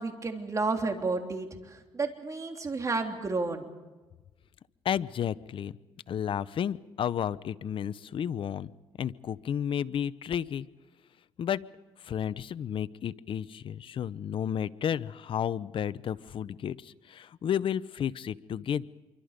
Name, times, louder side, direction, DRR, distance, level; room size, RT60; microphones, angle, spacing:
voice 1, 0.0-3.7, right 3 dB, 30° right, 4 dB, 3.3 m, -31 dB
voice 2, 4.8-5.7 6.1-8.7 9.0-10.7 11.4-11.6 12.0-18.9, left 9 dB, 60° left, 16 dB, 0.7 m, -32 dB
27.0 x 24.5 x 5.2 m, 1.2 s
cardioid pair, 85°, 10 cm